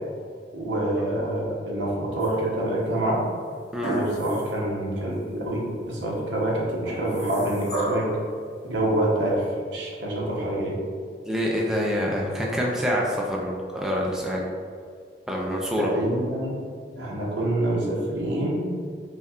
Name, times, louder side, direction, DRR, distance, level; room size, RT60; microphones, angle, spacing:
voice 1, 0.5-3.2 3.8-8.1 8.6-9.4 9.7-10.8 15.8-16.6 17.0-18.6, right 1 dB, 80° right, -4 dB, 0.9 m, -26 dB
sound 1, 2.2-2.8 3.8-4.7 5.1-5.2 6.8-8.2 9.3-9.4, right 2 dB, 40° left, 1.4 m, -32 dB
voice 2, 11.3-14.4 15.3-15.9, equal, 5° right, -3 dB, 0.4 m, -26 dB
5.4 x 2.3 x 2.4 m, 2.1 s
head